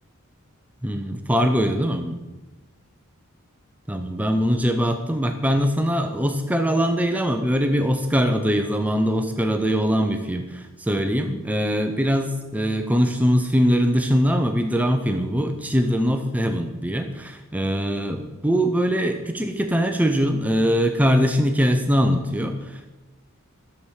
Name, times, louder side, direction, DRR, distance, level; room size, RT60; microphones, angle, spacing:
voice 1, 0.8-2.2 3.9-22.9, equal, 5° right, 5 dB, 0.6 m, -22 dB
11.0 x 7.2 x 4.9 m, 1.1 s
head